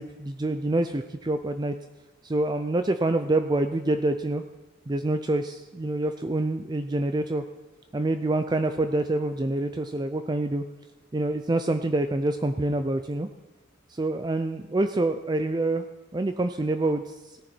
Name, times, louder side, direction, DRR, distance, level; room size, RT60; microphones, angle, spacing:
voice 1, 0.0-1.7 2.2-4.4 4.9-7.4 7.9-10.6 11.1-13.3 13.9-15.8 16.1-17.2, right 2 dB, 20° right, 8 dB, 0.4 m, -26 dB
17.0 x 10.0 x 4.4 m, 1.1 s
head